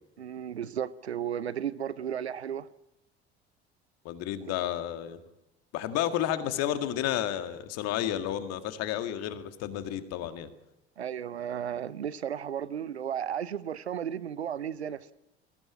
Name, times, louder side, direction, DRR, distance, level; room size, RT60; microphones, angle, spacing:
voice 1, 0.2-2.7 11.0-15.1, right 9 dB, 80° right, 0.7 m, -34 dB
voice 2, 4.0-5.2 5.7-10.5, left 11 dB, 50° left, 1.9 m, -31 dB
22.0 x 15.5 x 8.7 m
figure-of-eight pair, 60°, 32 cm